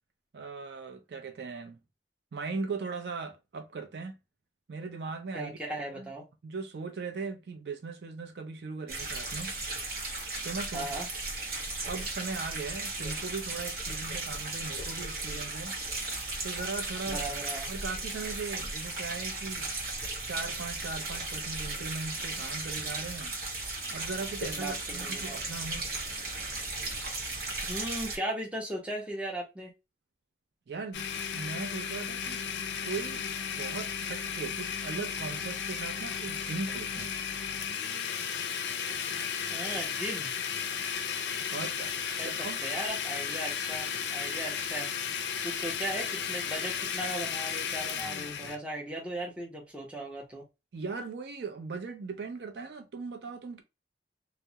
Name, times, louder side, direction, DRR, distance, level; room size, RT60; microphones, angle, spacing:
voice 1, 0.3-1.8 2.3-4.2 4.7-6.1 6.4-9.5 10.4-10.9 11.9-15.8 16.4-17.2 17.7-19.7 20.3-23.3 23.9-25.9 30.7-31.1 31.3-32.4 32.8-33.2 33.6-37.1 41.5-41.9 42.2-42.6 50.7-53.6, right 4 dB, 70° right, 0.4 m, -38 dB
voice 2, 5.3-6.3 10.7-11.1 17.1-17.7 24.5-25.4 27.7-29.7 39.5-40.3 41.5-41.8 42.2-44.9 45.4-50.4, right 1 dB, 5° right, 0.6 m, -37 dB
sound 1, 8.9-28.2, right 2 dB, 55° right, 0.9 m, -36 dB
Domestic sounds home sounds, 30.9-48.6, left 7 dB, 75° left, 0.4 m, -34 dB
2.2 x 2.0 x 2.7 m
head